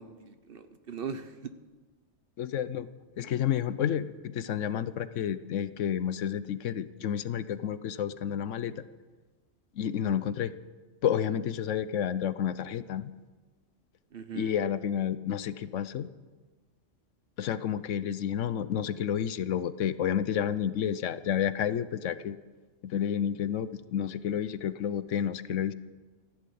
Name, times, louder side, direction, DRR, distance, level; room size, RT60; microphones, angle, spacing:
voice 1, 0.0-1.5 14.1-14.6, right 6 dB, 50° right, 11 dB, 1.0 m, -40 dB
voice 2, 2.4-2.9 3.2-8.8 9.8-10.5 11.0-13.1 14.3-16.1 17.4-22.4 22.8-25.7, left 9 dB, 75° left, 15 dB, 1.0 m, -30 dB
14.5 x 11.5 x 8.5 m, 1.3 s
omnidirectional pair, 1.3 m